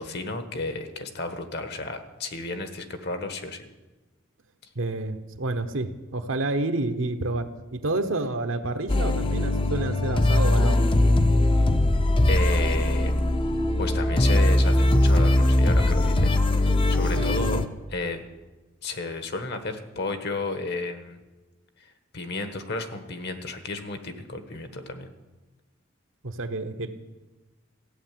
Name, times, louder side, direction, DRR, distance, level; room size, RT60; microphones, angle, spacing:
voice 1, 0.0-3.7 12.3-13.1 13.8-16.4 16.9-17.6 17.9-18.2 18.8-21.2 22.1-25.1, left 3 dB, 55° left, 8 dB, 1.3 m, -32 dB
voice 2, 4.7-10.9 17.2-17.3 26.2-26.9, right 2 dB, 70° right, 7 dB, 1.1 m, -29 dB
sound 1, 8.9-17.6, left 1 dB, 25° left, 0.7 m, -21 dB
14.0 x 9.1 x 7.6 m, 1.2 s
head